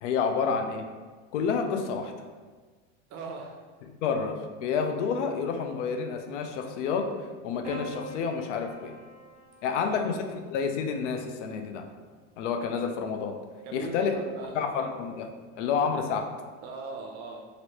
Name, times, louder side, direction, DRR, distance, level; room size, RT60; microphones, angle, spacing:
voice 1, 0.0-0.8 1.3-2.3 4.0-7.1 7.4-9.0 9.6-10.2 10.5-11.9 12.4-13.4 13.7-14.1 14.5-15.3 15.6-16.3, left 6 dB, 90° left, 6 dB, 0.5 m, -29 dB
voice 2, 3.1-3.6 9.7-10.0 13.6-14.6 16.6-17.5, right 4 dB, 50° right, 2 dB, 0.6 m, -39 dB
Piano, 7.6-12.1 13.3-14.0, equal, 20° right, 0.9 m, -45 dB
2.9 x 2.6 x 3.0 m, 1.4 s
supercardioid pair, 115°, 35 cm